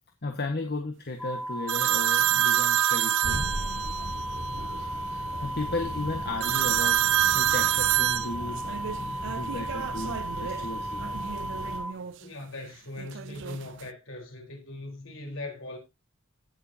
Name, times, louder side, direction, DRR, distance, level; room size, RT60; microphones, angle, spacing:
voice 1, 0.2-3.5 5.1-7.0 7.3-11.2, left 2 dB, 50° left, 1.5 m, -35 dB
sound 1, 1.2-11.9, right 1 dB, 5° left, 0.6 m, -35 dB
sound 2, 1.7-4.1 6.4-10.6 11.0-12.1 13.0-13.9, right 12 dB, 65° right, 0.4 m, -27 dB
sound 3, 3.2-11.8, equal, 80° right, 6.6 m, -38 dB
voice 2, 11.9-15.8, left 2 dB, 65° left, 4.1 m, -40 dB
17.0 x 6.8 x 2.8 m
head